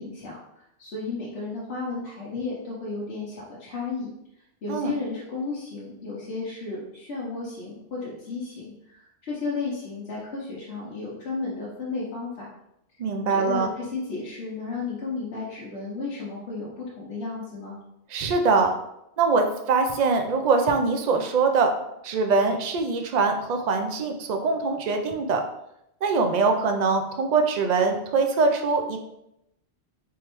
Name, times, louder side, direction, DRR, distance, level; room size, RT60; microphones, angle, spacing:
voice 1, 0.0-4.1 4.6-12.5 13.2-17.8, left 3 dB, 70° left, -7 dB, 1.1 m, -33 dB
voice 2, 13.0-13.7 18.1-18.7 19.2-21.7 22.0-25.4 26.0-29.0, right 4 dB, 55° right, 4 dB, 0.5 m, -23 dB
3.5 x 3.1 x 3.0 m, 0.82 s
omnidirectional pair, 1.1 m